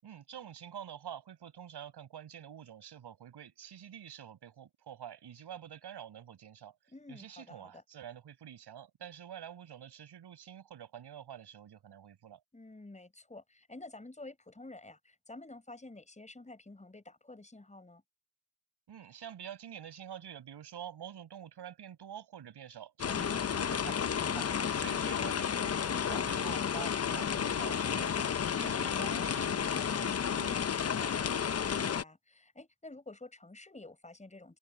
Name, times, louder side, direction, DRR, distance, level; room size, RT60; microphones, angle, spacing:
voice 1, 0.0-6.8 7.1-12.4 18.9-28.3 28.5-31.1, right 9 dB, 65° right, 7.8 m, -47 dB
voice 2, 6.9-7.8 12.5-18.0 28.6-29.4 31.5-34.6, left 2 dB, 15° left, 6.5 m, -50 dB
sound 1, 23.0-32.0, left 7 dB, 35° left, 0.8 m, -32 dB
cardioid pair, 105°, 43 cm